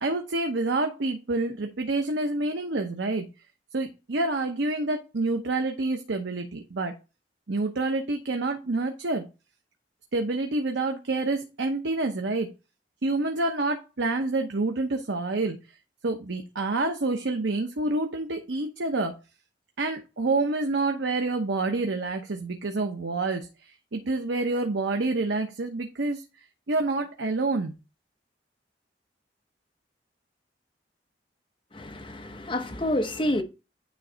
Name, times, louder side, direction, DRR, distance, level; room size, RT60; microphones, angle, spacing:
voice 1, 0.0-3.3 3.7-6.9 7.5-9.3 10.1-12.5 13.0-15.6 16.0-19.2 19.8-23.5 23.9-26.2 26.7-27.8, right 2 dB, 85° right, 0.8 m, -27 dB
voice 2, 31.7-33.4, left 1 dB, 30° left, 1.0 m, -28 dB
9.7 x 3.2 x 3.9 m
head